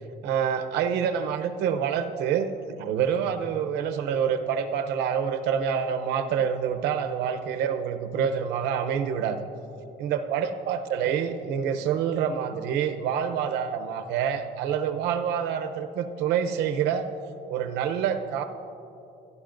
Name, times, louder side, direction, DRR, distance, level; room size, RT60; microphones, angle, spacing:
voice 1, 0.2-9.4 10.0-17.1 17.5-18.4, right 8 dB, 90° right, 8 dB, 0.7 m, -27 dB
24.5 x 11.0 x 2.6 m, 2.8 s
cardioid pair, 110°, 17 cm